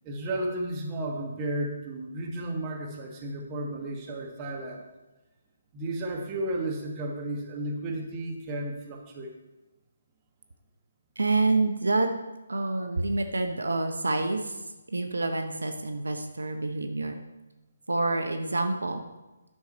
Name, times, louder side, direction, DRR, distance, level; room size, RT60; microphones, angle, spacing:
voice 1, 0.0-4.8 5.7-9.3, right 1 dB, 25° right, 0 dB, 1.5 m, -33 dB
voice 2, 11.2-12.1 12.5-14.5 14.9-17.2 17.9-19.0, right 2 dB, 75° right, 6 dB, 0.9 m, -27 dB
9.9 x 6.4 x 4.2 m, 1.1 s
figure-of-eight pair, 145°, 0 cm